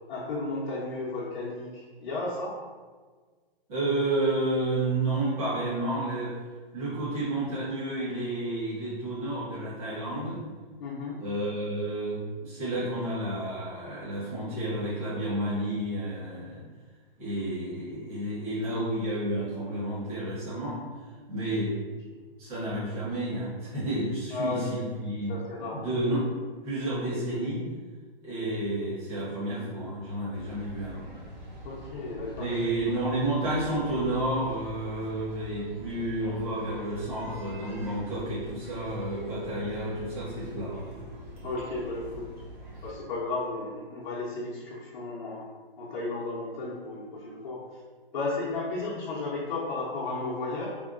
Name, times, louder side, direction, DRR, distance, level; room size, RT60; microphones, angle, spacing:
voice 1, 0.1-2.5 10.8-11.2 22.1-22.2 24.3-24.8 25.3-25.9 31.6-32.5 41.4-42.2 42.8-45.4 45.8-47.6 48.1-50.7, left 3 dB, 55° left, -8 dB, 0.7 m, -34 dB
voice 2, 3.7-6.3 6.7-10.4 11.2-16.6 17.2-20.8 21.3-21.8 22.4-26.3 26.6-27.6 28.2-31.1 32.4-40.9, right 1 dB, 40° right, -11 dB, 1.4 m, -31 dB
sound 1, 30.3-42.9, equal, 55° right, 0.9 m, -44 dB
Telephone, 35.7-36.0 36.3-37.4 37.9-38.0 38.5-38.6 39.0-40.1 41.4-42.0, left 1 dB, 15° right, 0.4 m, -42 dB
3.5 x 2.2 x 2.4 m, 1.5 s
hypercardioid pair, 165°, 29 cm